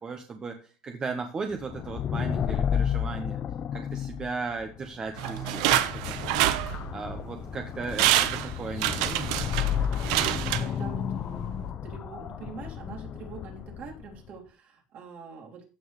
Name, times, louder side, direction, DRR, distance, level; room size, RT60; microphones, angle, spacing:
voice 1, 0.0-3.4 3.7-6.4 6.9-9.5, right 4 dB, 25° right, 5 dB, 1.2 m, -36 dB
sound 1, 1.6-14.2, left 9 dB, 35° left, 0.7 m, -32 dB
sound 2, 5.2-7.2 7.6-7.7 7.9-11.1 11.5-11.6, right 13 dB, 80° right, 1.0 m, -27 dB
voice 2, 10.6-11.4 11.8-15.7, right 5 dB, 50° right, 0 dB, 3.5 m, -44 dB
15.0 x 6.2 x 3.2 m, 0.36 s
supercardioid pair, 130°, 3 cm